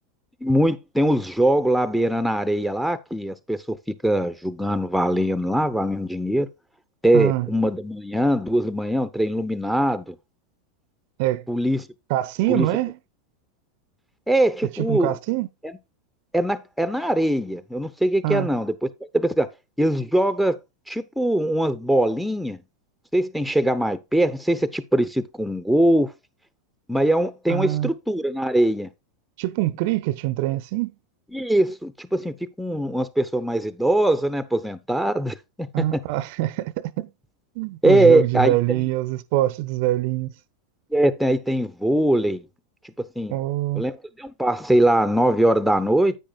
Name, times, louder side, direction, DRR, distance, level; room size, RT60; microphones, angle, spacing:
voice 1, 0.4-3.8 4.0-6.5 7.0-10.1 11.5-11.9 12.5-12.7 14.3-15.1 16.3-18.9 19.1-19.5 19.8-20.6 20.9-22.6 23.1-26.1 26.9-28.9 31.3-35.8 37.8-38.8 40.9-42.4 43.2-43.4 43.8-46.2, right 1 dB, ahead, 0.7 m, -22 dB
voice 2, 7.1-7.5 11.2-11.4 12.1-12.9 14.8-15.5 18.2-18.5 27.5-27.9 29.4-30.9 35.7-37.1 37.6-40.3 43.3-43.8, right 16 dB, 50° right, 0.6 m, -24 dB
10.0 x 8.7 x 2.3 m
figure-of-eight pair, 90°, 0 cm